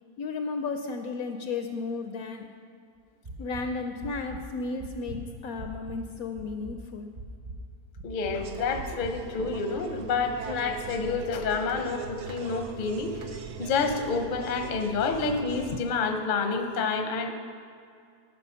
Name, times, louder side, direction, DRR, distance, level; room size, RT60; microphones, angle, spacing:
voice 1, 0.2-2.5 3.4-7.1, left 4 dB, 70° left, 6 dB, 0.9 m, -34 dB
sound 1, 3.2-3.6 4.0-4.4 4.8-6.0 6.4-6.8 7.2-7.6 8.0-8.4 8.7-9.1, right 2 dB, 35° right, 0.9 m, -41 dB
voice 2, 8.0-17.3, left 4 dB, 45° left, 6 dB, 0.6 m, -29 dB
sound 2, 8.4-15.8, right 6 dB, 75° right, 1.2 m, -40 dB
12.5 x 5.7 x 5.6 m, 2.3 s
omnidirectional pair, 1.8 m